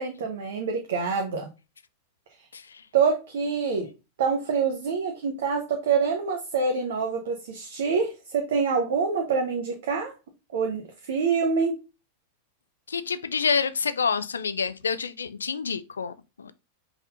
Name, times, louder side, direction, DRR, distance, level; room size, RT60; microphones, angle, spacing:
voice 1, 0.0-1.5 2.9-3.9 4.2-10.1 10.5-11.7, right 5 dB, 60° right, 0.8 m, -26 dB
voice 2, 12.9-16.5, left 5 dB, 70° left, 0.4 m, -28 dB
5.4 x 3.6 x 2.6 m
figure-of-eight pair, 90°, 0 cm